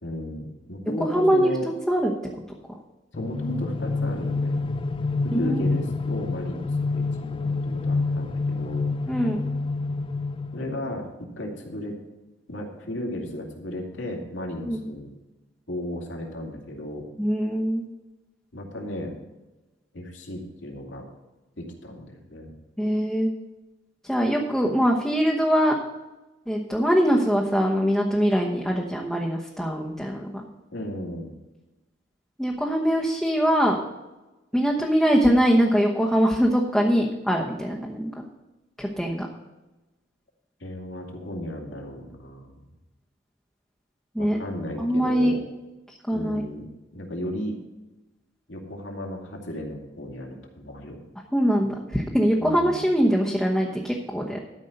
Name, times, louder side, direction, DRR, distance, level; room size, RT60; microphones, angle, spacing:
voice 1, 0.0-1.7 3.1-4.8 5.2-8.9 10.5-12.0 12.5-15.1 15.7-17.1 18.5-19.1 19.9-21.1 21.6-22.5 30.7-31.3 40.6-42.6 44.2-45.4 46.1-47.6 48.5-51.0 52.4-52.8, left 1 dB, 75° left, 0 dB, 2.6 m, -34 dB
voice 2, 1.1-1.5 1.9-2.1 5.3-5.8 9.1-9.4 14.6-14.9 17.2-17.9 22.8-23.3 24.1-25.8 26.5-30.5 32.4-33.8 34.5-38.1 38.8-39.3 44.1-44.4 44.8-45.3 46.1-46.4 51.3-54.4, equal, ahead, -2 dB, 1.0 m, -22 dB
sound 1, 3.1-11.0, left 3 dB, 30° left, 0.4 m, -28 dB
13.0 x 5.4 x 6.6 m, 1.1 s
head